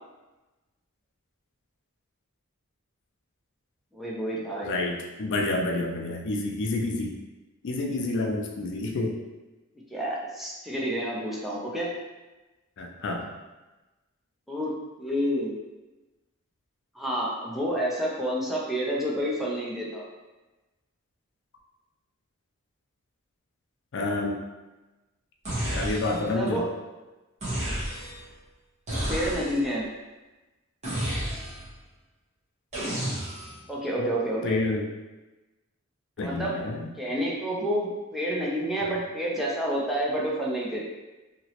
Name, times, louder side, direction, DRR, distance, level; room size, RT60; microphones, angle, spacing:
voice 1, 3.9-4.8 9.9-11.9 14.5-15.5 16.9-20.1 26.3-26.7 28.9-29.9 33.7-34.6 36.2-36.6 37.0-40.8, equal, ahead, -5 dB, 0.5 m, -29 dB
voice 2, 4.6-7.2 7.6-9.2 12.8-13.3 23.9-24.4 25.7-26.6 34.0-34.1 34.4-34.8 36.2-36.9 38.8-39.0, left 2 dB, 60° left, 1 dB, 0.4 m, -29 dB
sound 1, 25.4-26.4 27.4-28.3 28.9-29.7 30.8-31.8 32.7-33.6, right 1 dB, 35° right, 1.1 m, -31 dB
2.9 x 2.9 x 2.9 m, 1.1 s
head